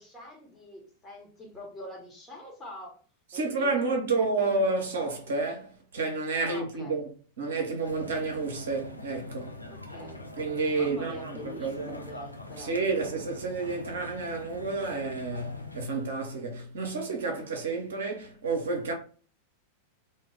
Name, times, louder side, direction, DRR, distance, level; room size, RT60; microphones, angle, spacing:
voice 1, 0.0-3.0 3.3-4.0 4.3-4.5 6.4-7.0 9.7-10.3 10.7-12.7, left 1 dB, 20° left, 1.0 m, -44 dB
voice 2, 3.3-7.1 7.4-9.6 10.4-11.9 12.6-18.9, right 3 dB, 65° right, 0.7 m, -30 dB
sound 1, 7.8-15.9, left 2 dB, 85° left, 0.4 m, -43 dB
2.2 x 2.1 x 3.3 m
figure-of-eight pair, 90°, 0 cm